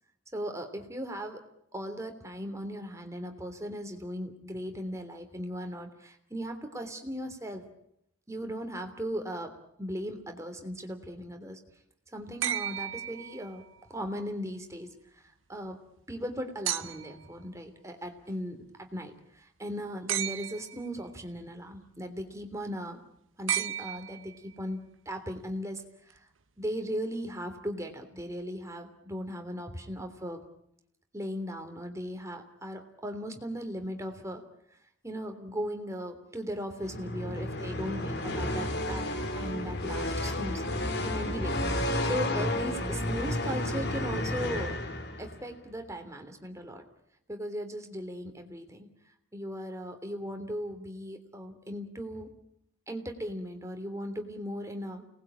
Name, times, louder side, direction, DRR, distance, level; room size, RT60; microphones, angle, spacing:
voice 1, 0.3-1.4 1.7-7.6 8.3-9.5 9.8-11.6 12.1-15.8 16.1-23.0 23.4-26.3 26.6-30.4 31.1-34.4 34.7-34.8 35.0-39.1 39.3-40.6 41.0-41.6 42.0-44.7 45.2-46.8 47.3-48.9 49.3-52.3 52.9-55.0, equal, 15° right, 5 dB, 3.2 m, -37 dB
sound 1, 12.4-13.8 16.7-17.3 20.1-20.9 23.5-24.5 26.1-26.2, right 11 dB, 90° right, 0.9 m, -33 dB
sound 2, 36.8-45.5, left 1 dB, 55° left, 2.7 m, -32 dB
29.5 x 20.0 x 8.8 m, 0.76 s
head